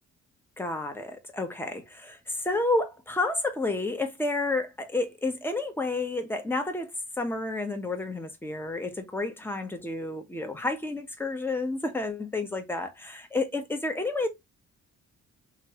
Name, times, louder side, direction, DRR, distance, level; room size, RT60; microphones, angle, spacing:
voice 1, 0.6-6.9 7.2-14.3, left 2 dB, 5° left, 0.8 m, -30 dB
3.0 x 2.3 x 2.8 m
cardioid pair, 90°, 30 cm